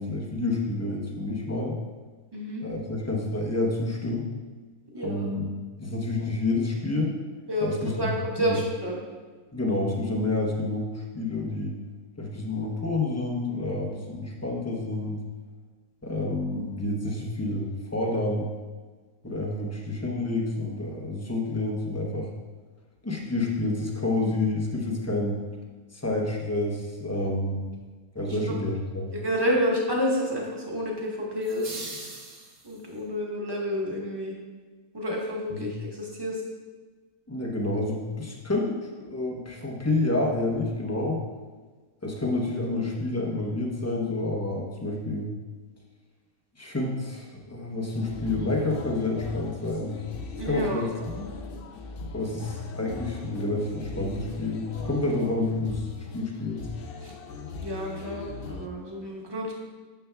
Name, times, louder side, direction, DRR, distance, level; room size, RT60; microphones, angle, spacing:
voice 1, 0.0-1.8 2.6-4.3 5.0-5.5 5.8-7.2 7.6-8.1 8.5-8.6 9.5-11.8 12.2-15.2 16.0-18.5 19.2-22.3 23.0-25.4 25.9-27.6 28.1-29.1 35.5-35.7 37.3-41.2 42.0-45.3 46.6-50.0 50.4-50.9 51.2-51.3 52.1-56.7, left 2 dB, 15° left, -1 dB, 0.6 m, -29 dB
voice 2, 2.3-2.6 4.9-5.3 7.5-9.0 28.2-28.6 29.1-31.8 32.6-34.4 34.9-36.4 50.4-50.8 57.0-57.1 57.6-59.5, equal, 20° right, -3 dB, 1.1 m, -29 dB
sound 1, 31.4-33.0, right 2 dB, 70° right, 1.7 m, -40 dB
sound 2, 47.9-58.7, left 3 dB, 70° left, 0.5 m, -39 dB
9.2 x 6.8 x 2.3 m, 1.4 s
omnidirectional pair, 1.6 m